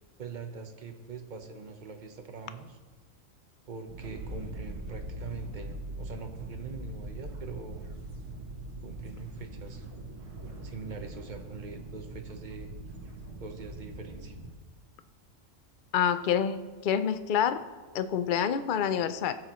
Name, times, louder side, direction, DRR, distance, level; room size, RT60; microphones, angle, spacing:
voice 1, 0.2-2.8 3.7-7.9 8.8-9.9 10.6-12.7 13.4-14.4, right 5 dB, 40° right, 5 dB, 1.0 m, -43 dB
sound 1, 3.9-14.5, right 1 dB, 55° right, 1.5 m, -42 dB
voice 2, 15.9-17.6 17.9-19.4, left 8 dB, 55° left, 11 dB, 0.6 m, -27 dB
17.5 x 7.7 x 3.1 m, 1.3 s
omnidirectional pair, 1.4 m